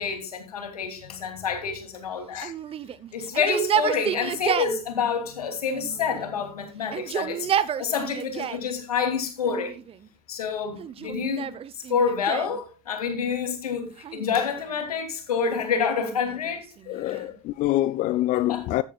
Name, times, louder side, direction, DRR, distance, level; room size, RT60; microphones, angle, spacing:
voice 1, 0.0-2.5 3.1-7.5 7.8-9.8 10.3-16.7 17.0-17.2 18.5-18.6, left 6 dB, 80° left, 2.8 m, -28 dB
Yell, 2.4-4.8 5.7-6.4 6.8-8.7 9.4-10.1 10.8-12.6 14.0-14.8 15.7-17.4, right 9 dB, 30° right, 0.8 m, -31 dB
voice 2, 16.9-18.8, left 15 dB, 40° left, 0.5 m, -25 dB
14.5 x 10.0 x 2.3 m
hypercardioid pair, 80°, 19 cm